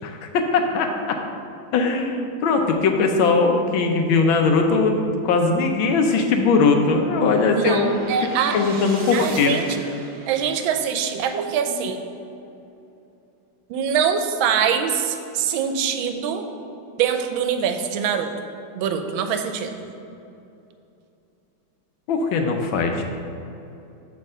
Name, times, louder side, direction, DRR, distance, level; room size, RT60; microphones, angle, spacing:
voice 1, 0.0-0.9 1.7-8.0 8.5-9.6 22.1-23.0, left 4 dB, 80° left, 4 dB, 1.5 m, -20 dB
sound 1, 4.0-11.3, right 2 dB, 50° right, 0.7 m, -41 dB
voice 2, 7.6-8.6 9.1-9.7 10.3-12.0 13.7-16.5 17.0-18.3 18.8-19.8, right 7 dB, 90° right, 7 dB, 1.4 m, -23 dB
8.1 x 3.3 x 6.5 m, 2.8 s
omnidirectional pair, 2.2 m